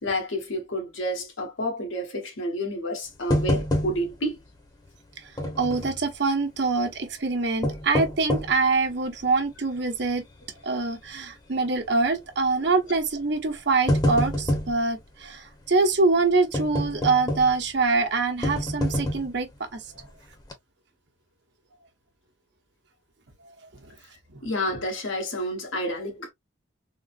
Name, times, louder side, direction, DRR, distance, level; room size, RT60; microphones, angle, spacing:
voice 1, 0.0-4.4 24.4-26.3, equal, 85° left, 1.2 m, -29 dB
sound 1, 3.3-4.3 4.6-4.7 5.4-6.0 7.4-8.6 9.2-9.3 9.9-10.2 10.5-10.6 11.7-12.0 12.9-13.1 13.5-14.8 16.5-17.7 18.4-19.4 19.9-20.1 20.4-20.5, left 1 dB, 20° left, 0.7 m, -26 dB
voice 2, 5.6-10.2 10.6-20.1 23.4-23.5, right 3 dB, 60° right, 0.9 m, -24 dB
3.7 x 2.0 x 2.5 m
head